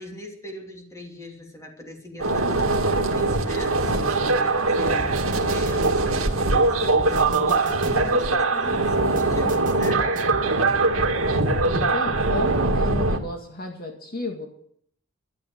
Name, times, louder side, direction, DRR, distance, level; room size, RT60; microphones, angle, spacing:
voice 1, 0.0-10.3, left 1 dB, 15° left, 1 dB, 3.0 m, -40 dB
sound 1, 2.2-13.2, right 3 dB, 75° right, 2.1 m, -22 dB
sound 2, 4.0-4.1 5.0-6.1 7.0-8.1 9.0-10.5 11.0-11.1, right 2 dB, 40° right, 1.2 m, -36 dB
voice 2, 11.6-14.5, left 1 dB, 45° left, 2 dB, 2.1 m, -32 dB
13.0 x 11.0 x 7.7 m, 0.63 s
head